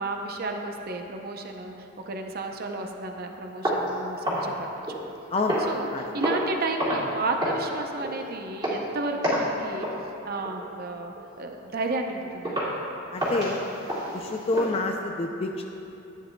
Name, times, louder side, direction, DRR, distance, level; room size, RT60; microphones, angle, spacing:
voice 1, 0.0-1.7 2.1-4.5 5.7-9.9 10.2-12.7, right 2 dB, 45° right, 3 dB, 0.6 m, -32 dB
sound 1, 3.6-5.1 5.5-5.8 6.2-6.5 6.8-7.1 7.4-7.7 8.0-8.2 8.6-8.9 9.2-9.5 9.8-10.0 10.4-10.7 11.2-11.3 11.8-11.9 12.4-12.8 13.2-14.7, equal, 20° right, 2.2 m, -29 dB
voice 2, 13.1-13.6 14.1-15.6, left 2 dB, 30° left, 2 dB, 0.4 m, -27 dB
14.0 x 9.3 x 2.2 m, 2.8 s
head